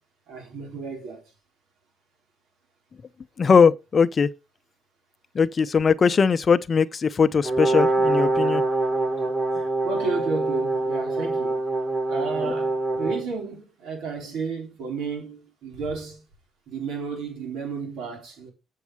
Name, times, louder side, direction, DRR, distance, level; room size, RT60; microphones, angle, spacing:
voice 1, 0.3-1.2 9.8-11.6 12.1-16.2 16.7-18.5, right 4 dB, 85° right, 3.8 m, -32 dB
voice 2, 3.4-4.3 5.3-8.6 12.4-12.5, left 5 dB, 40° left, 0.6 m, -20 dB
Brass instrument, 7.4-13.3, right 2 dB, 40° right, 4.5 m, -24 dB
8.3 x 6.5 x 4.7 m
cardioid pair, 90°, 0 cm